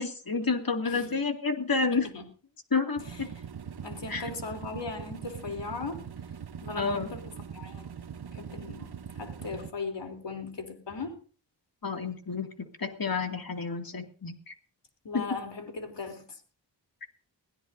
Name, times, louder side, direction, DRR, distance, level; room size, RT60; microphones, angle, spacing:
voice 1, 0.0-2.1 2.7-3.3 4.1-4.3 6.7-7.1 11.8-12.5 12.8-14.5 15.1-15.2, left 4 dB, 50° left, 5 dB, 2.4 m, -30 dB
voice 2, 0.8-1.2 1.9-2.3 3.1-3.2 3.8-6.0 6.6-11.2 15.0-16.4, left 4 dB, 70° left, 5 dB, 3.5 m, -38 dB
sound 1, 3.0-9.7, right 7 dB, 55° right, 1.0 m, -42 dB
22.0 x 16.0 x 2.7 m, 0.40 s
cardioid pair, 50°, 45 cm